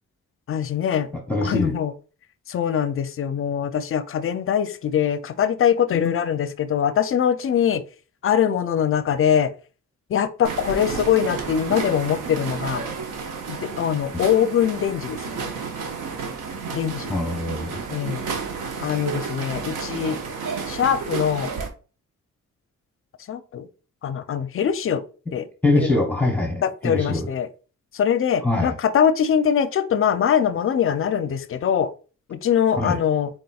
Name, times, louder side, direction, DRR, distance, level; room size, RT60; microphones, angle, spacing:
voice 1, 0.5-1.1 1.4-1.9 2.5-7.8 8.2-9.5 10.1-12.9 13.5-15.4 16.7-17.1 17.9-18.3 18.8-20.2 20.7-21.5 23.3-23.7 24.0-25.0 25.3-25.5 25.7-26.0 26.6-27.5 27.9-31.9 32.3-33.3, left 8 dB, 45° left, 13 dB, 0.4 m, -22 dB
voice 2, 1.1-1.7 17.1-17.8 25.6-27.3 28.4-28.7 32.8-33.0, left 2 dB, 5° left, 2 dB, 0.8 m, -23 dB
sound 1, 10.4-21.7, right 5 dB, 85° right, 0.8 m, -31 dB
4.1 x 3.7 x 2.3 m, 0.37 s
cardioid pair, 80°, 31 cm